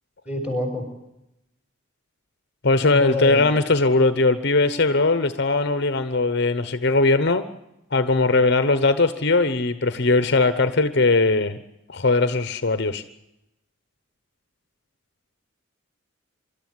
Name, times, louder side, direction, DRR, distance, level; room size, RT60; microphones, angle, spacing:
voice 1, 0.2-0.8 2.9-3.5, left 1 dB, 5° right, 2 dB, 6.4 m, -27 dB
voice 2, 2.6-7.4 7.9-11.6 11.9-13.0, left 3 dB, 55° left, 11 dB, 1.0 m, -20 dB
25.0 x 13.5 x 9.6 m, 0.88 s
head